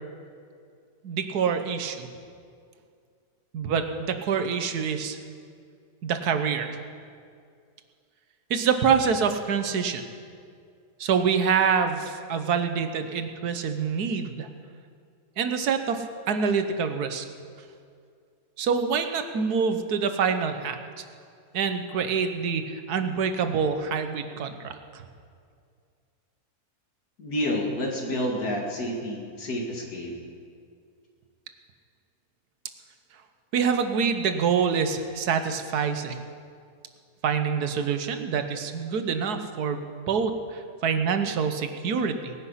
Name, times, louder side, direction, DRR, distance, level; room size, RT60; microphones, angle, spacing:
voice 1, 1.0-2.1 3.5-5.2 6.0-6.8 8.5-10.0 11.0-14.5 15.4-17.2 18.6-20.8 21.5-25.0 33.5-36.2 37.2-42.3, right 6 dB, 80° right, 8 dB, 1.5 m, -26 dB
voice 2, 27.2-30.1, left 1 dB, 75° left, 0 dB, 2.7 m, -29 dB
19.5 x 9.8 x 5.7 m, 2.3 s
omnidirectional pair, 1.6 m